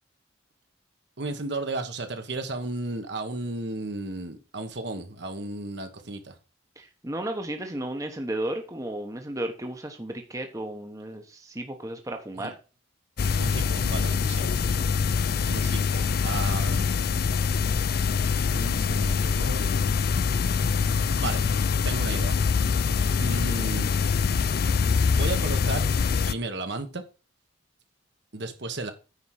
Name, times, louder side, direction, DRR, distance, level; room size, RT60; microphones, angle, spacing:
voice 1, 1.2-6.3 13.4-14.7 15.0-16.9 18.5-19.7 20.4-20.6 21.1-21.4 21.8-22.3 23.2-23.9 25.1-25.9 26.3-27.0 28.3-28.9, right 2 dB, 60° right, 1.3 m, -34 dB
voice 2, 6.8-12.5, right 1 dB, 15° right, 1.0 m, -34 dB
sound 1, 13.2-26.3, left 5 dB, 50° left, 0.4 m, -24 dB
9.7 x 4.7 x 6.3 m
head